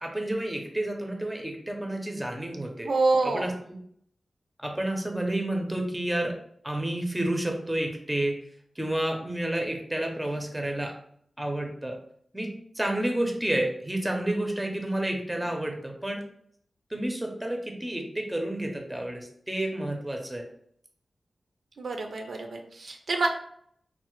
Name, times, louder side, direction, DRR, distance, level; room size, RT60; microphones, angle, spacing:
voice 1, 0.0-2.9 3.2-3.5 4.6-6.3 6.6-8.4 8.8-10.9 11.4-11.9 12.3-16.2 16.9-20.4, right 1 dB, 10° right, 2 dB, 0.5 m, -30 dB
voice 2, 2.9-3.6 21.8-23.3, right 3 dB, 70° right, 4 dB, 0.4 m, -27 dB
3.1 x 2.0 x 3.0 m, 0.66 s
wide cardioid pair, 125°, 0 cm